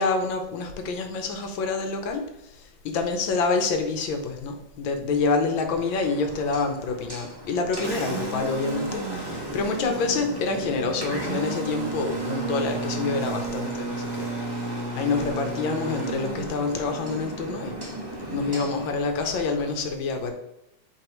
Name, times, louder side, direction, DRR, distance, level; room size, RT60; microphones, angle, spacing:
voice 1, 0.0-14.3 15.0-17.8 18.3-20.3, left 4 dB, 75° left, 5 dB, 1.6 m, -27 dB
Engine, 5.7-19.7, right 2 dB, 15° right, 1.0 m, -33 dB
8.1 x 3.8 x 3.1 m, 0.89 s
omnidirectional pair, 2.2 m